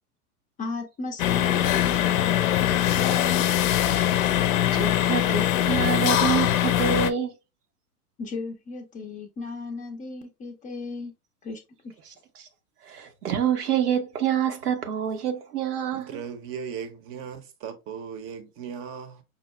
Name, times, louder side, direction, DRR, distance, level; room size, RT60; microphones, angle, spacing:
voice 1, 0.6-3.5 8.2-11.1 11.4-11.9, left 3 dB, 20° left, 0.5 m, -36 dB
sound 1, 1.2-7.1, left 12 dB, 60° left, 0.6 m, -22 dB
voice 2, 4.7-7.3 12.9-16.2, right 8 dB, 85° right, 0.9 m, -27 dB
voice 3, 15.9-19.2, right 7 dB, 30° right, 0.8 m, -37 dB
5.4 x 2.0 x 3.1 m
hypercardioid pair, 110°, 44 cm